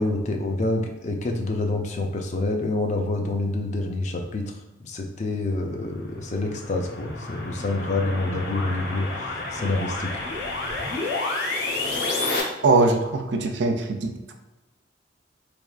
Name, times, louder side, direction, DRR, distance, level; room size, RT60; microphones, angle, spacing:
voice 1, 0.0-10.1, left 2 dB, 40° left, 2 dB, 0.5 m, -27 dB
sound 1, 5.9-12.4, left 2 dB, 65° left, 0.9 m, -30 dB
voice 2, 12.6-14.1, right 3 dB, 70° right, 5 dB, 0.5 m, -21 dB
4.2 x 3.5 x 2.4 m, 1.1 s
head